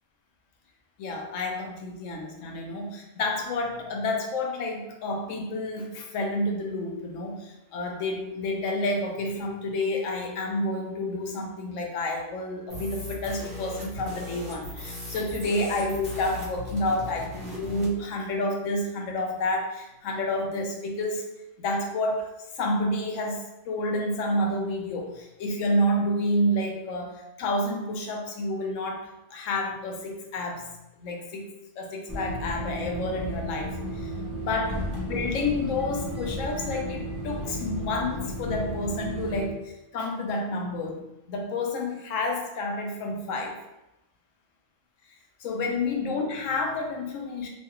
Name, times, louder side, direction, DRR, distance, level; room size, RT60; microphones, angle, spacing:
voice 1, 1.0-21.3 21.6-22.3 22.6-30.7 31.0-31.5 31.8-34.1 34.4-43.6 45.4-47.5, left 1 dB, 80° left, 1 dB, 1.0 m, -29 dB
sound 1, 12.7-17.9, left 2 dB, 50° right, 1.1 m, -38 dB
sound 2, 32.1-39.5, equal, 25° right, 0.4 m, -34 dB
3.1 x 2.3 x 2.8 m, 0.92 s
omnidirectional pair, 1.3 m